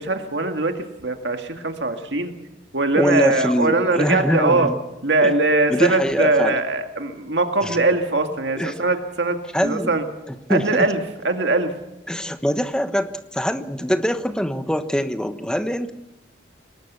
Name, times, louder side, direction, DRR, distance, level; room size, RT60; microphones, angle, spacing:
voice 1, 0.0-2.3 2.7-4.7 5.0-10.0 10.5-11.0 11.2-11.7, right 2 dB, 70° right, 6 dB, 2.0 m, -21 dB
voice 2, 3.0-4.8 5.2-5.4 5.7-6.6 7.6-7.8 8.6-8.8 9.5-10.0 10.5-10.9 12.1-15.9, equal, 5° left, 9 dB, 1.2 m, -23 dB
22.5 x 19.0 x 6.9 m, 0.95 s
head